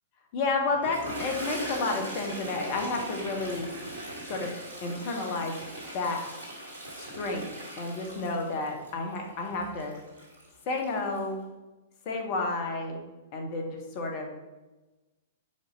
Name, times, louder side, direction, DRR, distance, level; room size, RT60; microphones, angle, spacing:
voice 1, 0.3-3.7 4.2-4.5 4.8-5.6 5.9-6.2 6.9-7.4 7.8-9.9 10.6-11.4 12.0-13.0 13.3-14.3, left 3 dB, 40° left, 2 dB, 1.4 m, -31 dB
Toilet flush, 0.7-11.3, right 1 dB, 65° right, 2.3 m, -40 dB
5.5 x 4.8 x 5.2 m, 1.1 s
figure-of-eight pair, 105°, 0 cm